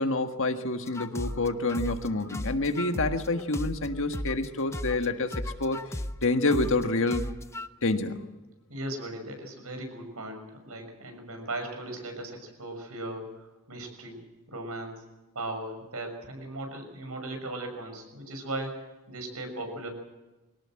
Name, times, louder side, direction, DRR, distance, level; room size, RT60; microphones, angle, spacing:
voice 1, 0.0-7.3 7.8-8.3, left 2 dB, 60° left, 7 dB, 1.6 m, -28 dB
sound 1, 0.9-4.5 4.7-7.7, left 1 dB, 10° left, 0.6 m, -35 dB
voice 2, 8.7-14.2 14.5-15.0 15.3-19.9, right 1 dB, 75° right, 5 dB, 6.4 m, -38 dB
23.0 x 18.0 x 7.7 m, 1.1 s
head